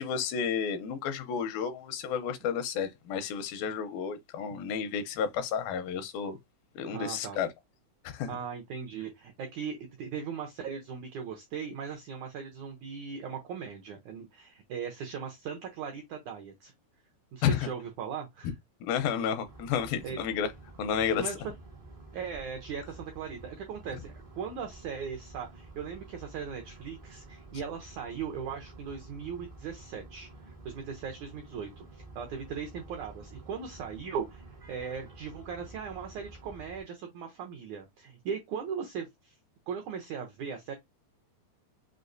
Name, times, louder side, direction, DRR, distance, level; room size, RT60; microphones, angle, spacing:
voice 1, 0.0-6.4 6.8-7.5 8.0-8.3 17.4-17.7 18.8-20.5 20.8-21.3, left 7 dB, 80° left, 2.4 m, -31 dB
voice 2, 6.9-7.4 8.3-16.7 17.3-18.5 20.0-20.2 21.1-21.5 22.1-39.4 39.7-40.7, right 6 dB, 85° right, 1.7 m, -39 dB
sound 1, 19.4-36.8, right 2 dB, 55° right, 0.6 m, -50 dB
6.3 x 2.4 x 2.6 m
omnidirectional pair, 4.3 m